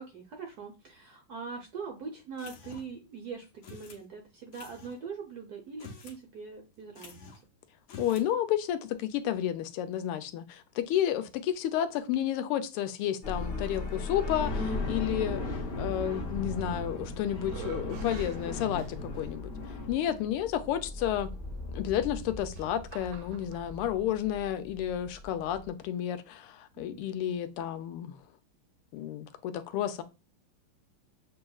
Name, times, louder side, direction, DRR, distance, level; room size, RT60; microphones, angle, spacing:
voice 1, 0.0-7.3 15.1-15.5 19.9-20.3 26.7-27.1, right 5 dB, 65° right, 1.0 m, -43 dB
sound 1, 2.4-3.0 3.6-4.0 4.5-5.0 5.7-6.2 6.5-6.6 7.0-7.5 7.8-8.3, left 4 dB, 65° left, 1.5 m, -48 dB
voice 2, 8.0-15.4 15.8-19.5 19.9-21.3 21.7-28.2 28.9-30.0, left 11 dB, 85° left, 1.5 m, -31 dB
sound 2, 13.2-25.7, left 2 dB, 45° left, 0.7 m, -37 dB
sound 3, 16.6-17.1 17.4-19.3 20.1-20.2 22.0-23.7, right 11 dB, 80° right, 1.4 m, -49 dB
7.2 x 2.8 x 2.3 m
omnidirectional pair, 2.4 m